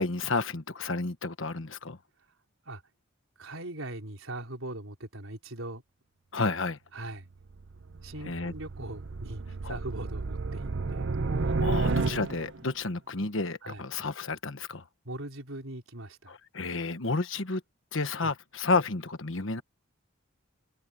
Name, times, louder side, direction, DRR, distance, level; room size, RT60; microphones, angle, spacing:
voice 1, 0.0-2.0 6.3-6.8 8.3-8.5 9.6-9.8 11.6-14.8 16.3-17.6 17.9-19.6, left 3 dB, 65° left, 1.3 m, -31 dB
voice 2, 3.4-5.8 6.9-7.3 8.0-11.2 13.6-13.8 15.0-16.4 18.2-18.3, right 1 dB, 75° right, 4.2 m, -40 dB
sound 1, 7.4-12.7, right 3 dB, 60° right, 0.6 m, -31 dB
head